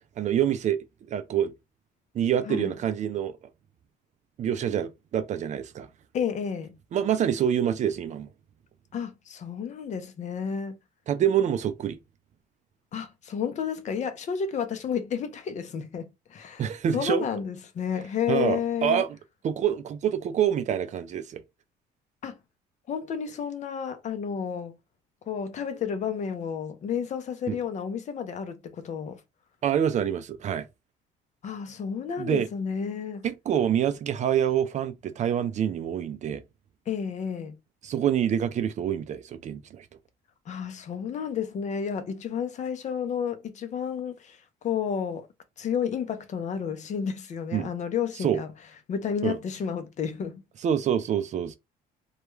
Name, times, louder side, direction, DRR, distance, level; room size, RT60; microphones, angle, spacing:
voice 1, 0.2-0.8 1.1-1.5 2.1-3.3 4.4-5.9 6.9-8.3 11.1-12.0 16.6-17.2 18.3-19.1 19.4-21.4 27.5-27.6 29.6-30.7 32.2-32.5 33.2-36.4 37.8-39.9 47.5-47.7 48.2-48.4 49.2-49.4 50.6-51.6, right 9 dB, 45° right, 0.4 m, -26 dB
voice 2, 6.1-6.8 8.9-10.8 12.9-16.6 16.9-19.0 22.2-22.4 22.9-24.8 25.3-29.2 31.4-33.3 36.9-37.6 40.5-45.3 45.6-48.5 48.9-50.4, left 7 dB, 45° left, 0.5 m, -31 dB
2.3 x 2.1 x 3.0 m
cardioid pair, 110°, 17 cm